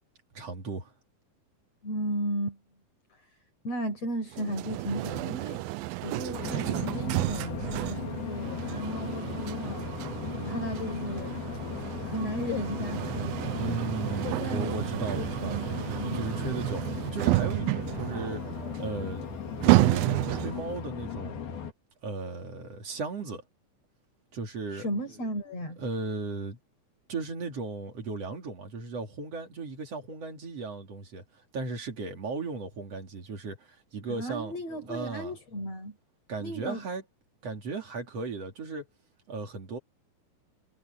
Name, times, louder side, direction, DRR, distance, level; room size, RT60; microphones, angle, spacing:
voice 1, 0.3-0.9 13.5-15.6 16.1-19.3 19.6-21.4 22.0-23.4 24.3-24.9 25.8-26.6 27.1-34.5 34.9-35.3 36.3-37.0 37.4-38.9 39.3-39.8, right 3 dB, 45° right, 3.5 m, -36 dB
voice 2, 1.8-2.6 3.1-3.3 3.6-5.6 6.0-9.9 10.4-11.4 12.0-13.9 14.2-14.8 15.1-15.6 16.0-16.3 24.7-25.8 34.1-36.0 36.4-36.8, equal, 45° left, 6.2 m, -35 dB
sound 1, 4.3-20.7, right 19 dB, 90° right, 2.5 m, -31 dB
sound 2, 6.3-21.7, left 7 dB, 90° left, 4.6 m, -37 dB
omnidirectional pair, 4.2 m